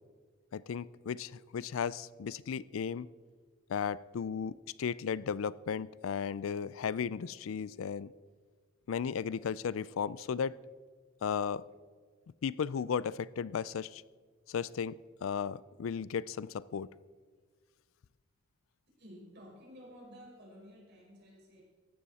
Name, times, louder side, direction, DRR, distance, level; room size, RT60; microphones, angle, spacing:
voice 1, 0.5-3.1 3.7-8.1 8.9-10.6 11.2-11.6 12.4-14.0 14.5-16.9, left 7 dB, 80° left, 20 dB, 0.4 m, -35 dB
voice 2, 19.0-21.6, equal, 55° right, -3 dB, 5.1 m, -53 dB
15.5 x 12.0 x 4.2 m, 1.5 s
head